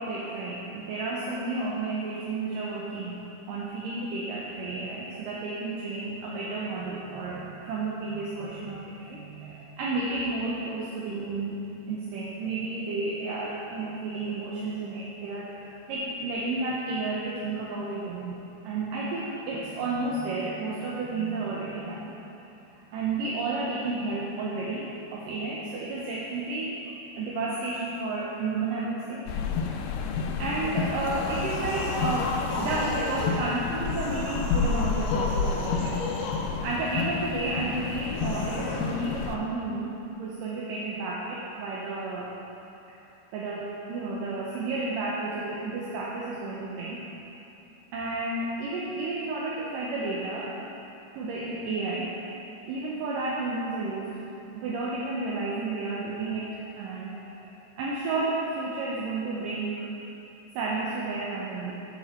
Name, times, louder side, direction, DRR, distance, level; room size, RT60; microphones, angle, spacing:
voice 1, 0.0-18.4 18.6-22.1 22.9-26.8 27.2-29.3 29.6-29.8 30.4-36.0 36.6-42.3 43.3-47.0 47.9-50.5 51.1-52.1 52.7-54.1 54.5-59.9 60.5-61.7, right 3 dB, 70° right, -5 dB, 2.2 m, -32 dB
sound 1, 29.3-39.4, left 5 dB, 85° left, 2.0 m, -30 dB
sound 2, 30.9-33.4 33.8-36.5 38.1-38.9, left 3 dB, 70° left, 2.4 m, -35 dB
13.5 x 5.9 x 4.3 m, 2.9 s
omnidirectional pair, 4.5 m